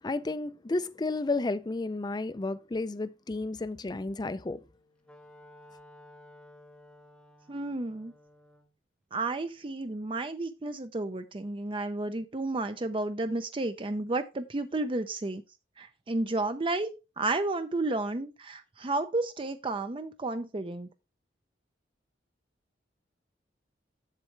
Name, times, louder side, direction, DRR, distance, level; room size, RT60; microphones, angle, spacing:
voice 1, 0.0-4.6, left 2 dB, 25° left, 0.4 m, -32 dB
Wind instrument woodwind instrument, 4.6-8.7, left 1 dB, 5° left, 0.9 m, -55 dB
voice 2, 7.5-8.1 9.1-15.4 15.8-16.9 17.2-20.9, right 2 dB, 30° right, 0.5 m, -32 dB
7.6 x 7.3 x 3.2 m
head